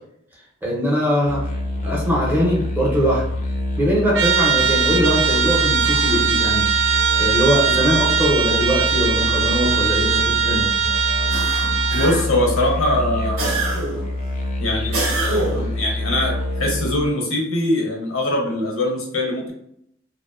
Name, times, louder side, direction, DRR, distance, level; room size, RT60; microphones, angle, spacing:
voice 1, 0.6-1.4 1.8-3.2 3.8-6.7 7.2-10.7, equal, 10° right, -4 dB, 0.6 m, -21 dB
sound 1, 1.3-17.1, left 2 dB, 40° left, 0.4 m, -26 dB
Trumpet, 4.1-12.2, right 7 dB, 60° right, 0.3 m, -20 dB
sound 2, 11.3-12.5 13.4-14.1 14.9-15.8, right 3 dB, 90° right, 0.7 m, -25 dB
voice 2, 11.9-13.8 14.6-16.3 16.6-19.5, left 1 dB, 85° left, 0 dB, 0.7 m, -22 dB
2.4 x 2.1 x 2.3 m, 0.72 s
head